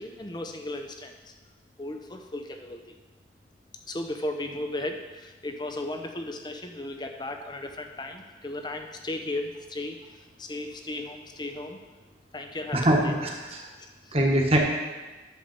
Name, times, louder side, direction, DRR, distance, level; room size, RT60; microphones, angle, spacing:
voice 1, 0.0-1.3 1.8-2.9 3.9-11.8 12.3-13.2 13.8-14.2, left 1 dB, 25° left, 5 dB, 0.7 m, -36 dB
voice 2, 12.7-13.6 14.1-14.6, right 1 dB, 35° right, 0 dB, 1.4 m, -23 dB
10.5 x 7.1 x 4.4 m, 1.2 s
head